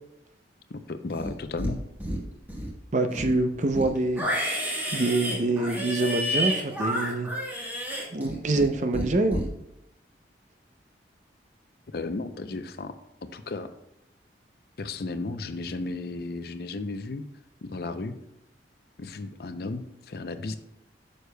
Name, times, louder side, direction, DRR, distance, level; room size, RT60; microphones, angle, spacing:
voice 1, 0.7-1.8 11.9-12.9 13.2-13.7 14.8-17.2 17.6-18.2 19.0-20.6, left 3 dB, 55° left, 10 dB, 0.5 m, -34 dB
Livestock farm animals working animals, 1.1-1.7 2.0-2.7 3.1-8.7 8.9-9.5, equal, 10° right, 1.2 m, -30 dB
voice 2, 2.9-4.6 4.9-7.3 8.1-9.4, right 2 dB, 40° right, 7 dB, 0.6 m, -26 dB
9.2 x 6.5 x 2.2 m, 0.85 s
head